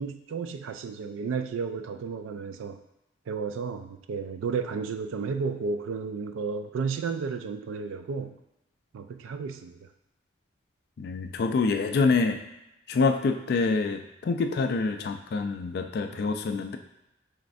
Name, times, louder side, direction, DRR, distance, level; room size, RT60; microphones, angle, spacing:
voice 1, 0.0-2.8 3.3-8.4 8.9-9.9 16.1-16.3, right 5 dB, 85° right, 8 dB, 0.3 m, -33 dB
voice 2, 11.0-12.4 12.9-16.8, left 4 dB, 55° left, 6 dB, 0.3 m, -26 dB
5.0 x 3.2 x 2.6 m, 0.89 s
head